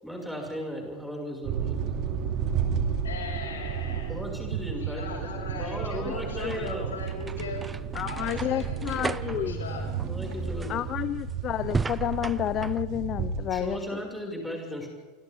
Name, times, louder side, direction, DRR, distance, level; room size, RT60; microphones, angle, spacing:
voice 1, 0.0-1.8 4.1-7.0 10.0-10.8 13.5-14.9, equal, ahead, 0 dB, 6.5 m, -36 dB
sound 1, 1.4-13.8, right 7 dB, 45° right, 2.8 m, -33 dB
voice 2, 3.0-4.2 4.8-7.6 8.0-9.9, left 4 dB, 75° left, 1 dB, 6.7 m, -38 dB
sound 2, 4.3-12.4, right 9 dB, 65° right, 1.3 m, -39 dB
voice 3, 5.8-6.1 6.4-6.7 7.9-9.6 10.7-14.0 14.5-14.6, left 12 dB, 40° left, 16 dB, 0.7 m, -31 dB
sound 3, 6.1-12.8, right 4 dB, 15° right, 0.6 m, -35 dB
29.5 x 25.0 x 3.8 m, 1.4 s
figure-of-eight pair, 85°, 0 cm